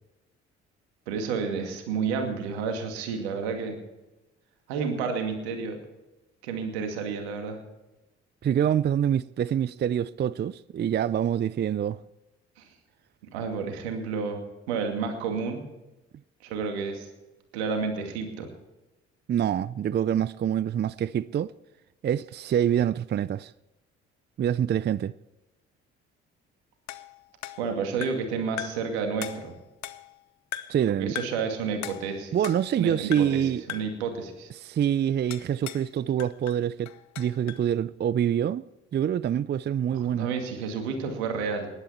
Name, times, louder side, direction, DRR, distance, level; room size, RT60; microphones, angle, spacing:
voice 1, 1.1-3.8 4.7-5.8 6.4-7.6 12.6-12.7 13.3-14.4 14.7-15.6 16.4-17.1 17.5-18.5 27.6-29.5 31.0-32.4 32.8-34.5 39.9-41.7, right 5 dB, 80° right, 2.4 m, -30 dB
voice 2, 8.4-12.0 19.3-21.5 22.0-23.5 24.4-25.1 30.7-31.2 32.3-33.6 34.6-38.6 38.9-40.3, right 9 dB, 35° right, 0.5 m, -26 dB
sound 1, 26.9-28.3 28.6-28.9 29.2-30.2 30.5-30.9 31.1-31.5 31.8-32.8 33.1-33.4 33.7-34.0 35.3-35.9 36.2-37.7, left 12 dB, 60° left, 0.9 m, -39 dB
19.5 x 11.5 x 4.4 m
hypercardioid pair, 45°, 32 cm